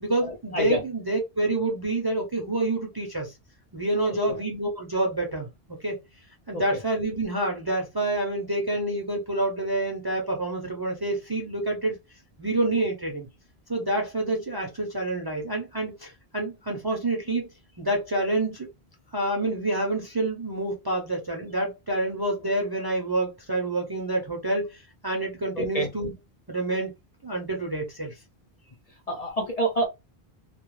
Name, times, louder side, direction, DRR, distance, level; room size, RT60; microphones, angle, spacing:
voice 1, 0.0-3.3 3.7-6.0 6.5-12.0 12.4-13.3 13.7-17.5 17.8-18.7 19.1-26.1 26.5-26.9 27.2-28.1, right 2 dB, 30° right, 0.4 m, -28 dB
voice 2, 25.6-25.9 29.1-29.9, right 1 dB, 50° left, 0.5 m, -26 dB
2.3 x 2.2 x 3.0 m
omnidirectional pair, 1.1 m